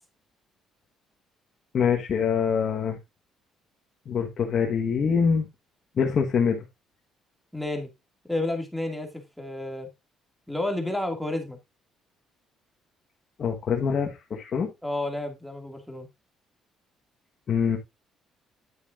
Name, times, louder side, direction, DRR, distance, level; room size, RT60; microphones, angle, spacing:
voice 1, 1.7-3.0 4.1-5.5 6.0-6.6 13.4-14.7 17.5-17.8, left 6 dB, 45° left, 1.4 m, -24 dB
voice 2, 7.5-7.9 8.3-9.9 10.5-11.6 14.8-16.1, left 1 dB, ahead, 2.3 m, -31 dB
10.0 x 8.2 x 2.6 m
cardioid pair, 120°, 0 cm